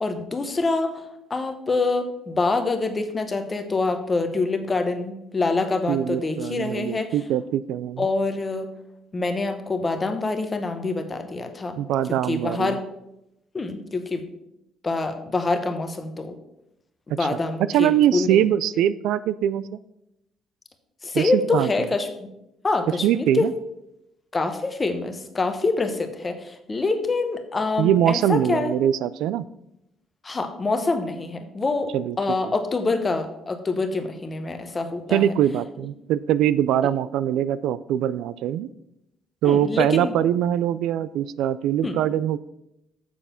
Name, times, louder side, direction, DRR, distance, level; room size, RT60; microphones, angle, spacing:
voice 1, 0.0-7.1 8.0-8.7 9.1-11.8 12.1-12.8 13.5-14.2 14.8-16.3 17.1-18.4 18.7-18.8 21.0-22.3 22.6-23.5 24.3-28.7 30.2-35.3 39.4-40.1 41.8-42.0, left 3 dB, 20° left, 7 dB, 1.0 m, -26 dB
voice 2, 5.9-8.1 11.8-12.8 17.7-19.8 21.1-21.7 23.0-23.5 27.8-29.5 31.9-32.2 35.1-38.7 39.4-42.4, right 11 dB, 85° right, 16 dB, 0.3 m, -22 dB
7.2 x 6.7 x 5.7 m, 0.84 s
cardioid pair, 145°, 0 cm